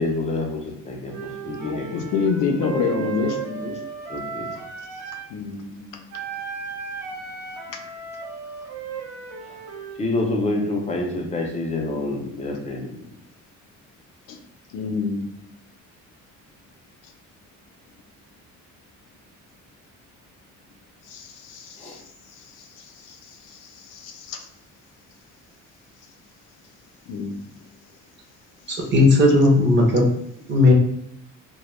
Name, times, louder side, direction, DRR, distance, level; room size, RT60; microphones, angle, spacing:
voice 1, 0.0-2.2 2.5-3.8 4.1-4.5 5.7-6.0 9.5-9.6 10.0-13.0 21.8-22.0, left 2 dB, 20° left, 1 dB, 0.4 m, -28 dB
Wind instrument woodwind instrument, 1.1-5.3 6.1-10.0, right 6 dB, 80° right, 0.6 m, -35 dB
voice 2, 1.6-3.4 5.3-5.7 14.3-14.4 14.7-15.3 21.0-22.0 22.4-24.5 27.1-27.3, left 5 dB, 85° left, 4 dB, 0.5 m, -28 dB
voice 3, 28.7-30.0 30.5-30.7, left 2 dB, 35° right, -1 dB, 0.6 m, -16 dB
2.2 x 2.1 x 3.0 m, 0.75 s
cardioid pair, 155°, 31 cm